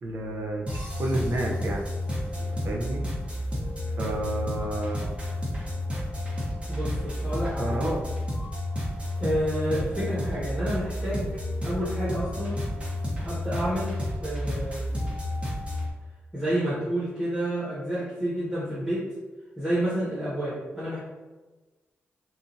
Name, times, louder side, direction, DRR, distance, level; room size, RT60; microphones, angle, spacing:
voice 1, 0.0-1.8 2.5-3.0 4.0-5.1 7.6-8.0, right 1 dB, 60° right, -1 dB, 0.6 m, -30 dB
sound 1, 0.7-15.9, left 1 dB, 25° right, 0.9 m, -31 dB
voice 2, 6.7-7.8 9.2-11.3 11.6-12.6 13.2-14.0 14.2-14.8 16.3-19.0 19.6-21.0, right 1 dB, 10° right, -11 dB, 1.2 m, -29 dB
2.8 x 2.5 x 2.6 m, 1.2 s
cardioid pair, 70°, 5 cm